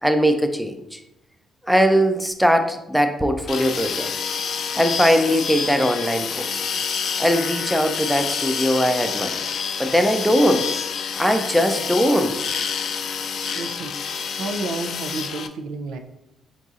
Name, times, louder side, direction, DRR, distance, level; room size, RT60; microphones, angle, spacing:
voice 1, 0.0-1.0 1.7-4.1 4.8-6.6 7.2-9.4 9.8-10.7 11.2-12.4, equal, ahead, 6 dB, 0.4 m, -20 dB
sound 1, 3.5-15.5, left 6 dB, 65° left, 0.3 m, -28 dB
voice 2, 13.5-16.0, right 3 dB, 90° right, 5 dB, 0.4 m, -31 dB
4.0 x 3.9 x 2.4 m, 0.88 s
cardioid pair, 90°, 0 cm